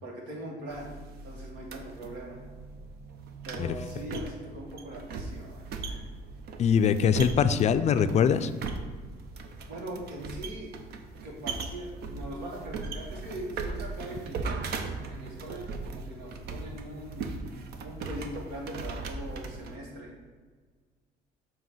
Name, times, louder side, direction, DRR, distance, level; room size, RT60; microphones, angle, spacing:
voice 1, 0.0-0.9 1.2-2.4 3.4-6.1 9.7-10.7 11.2-14.7 15.1-17.3 17.8-20.1, right 1 dB, 90° right, -1 dB, 1.7 m, -41 dB
sound 1, 0.7-19.8, right 3 dB, 70° right, 0.7 m, -39 dB
voice 2, 6.6-8.5, left 7 dB, 40° left, 12 dB, 0.4 m, -23 dB
7.2 x 2.9 x 5.5 m, 1.5 s
cardioid pair, 110°, 17 cm